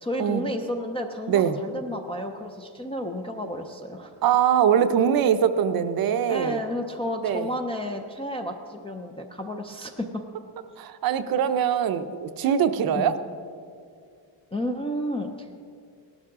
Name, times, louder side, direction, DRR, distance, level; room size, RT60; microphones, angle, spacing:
voice 1, 0.0-4.1 6.3-10.2 13.0-13.1 14.5-15.6, equal, 15° left, 0 dB, 0.3 m, -32 dB
voice 2, 4.2-6.6 7.2-7.5 10.8-13.2, right 8 dB, 50° right, 10 dB, 0.6 m, -22 dB
17.5 x 12.0 x 3.6 m, 2.3 s
cardioid pair, 175°, 49 cm